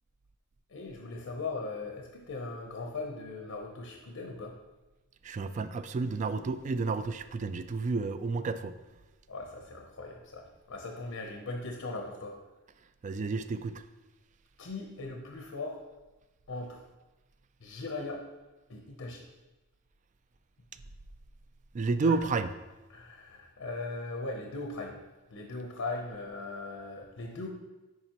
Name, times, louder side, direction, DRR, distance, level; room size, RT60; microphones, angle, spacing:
voice 1, 0.7-4.5 9.3-12.4 14.6-15.8 16.5-16.8 17.6-18.2 18.7-19.2 22.0-22.2 22.9-25.0 25.3-27.5, left 3 dB, 85° left, 2 dB, 0.8 m, -39 dB
voice 2, 5.2-8.7 13.0-13.7 21.7-22.6, right 4 dB, 35° right, 12 dB, 0.3 m, -31 dB
9.5 x 5.0 x 3.0 m, 1.1 s
head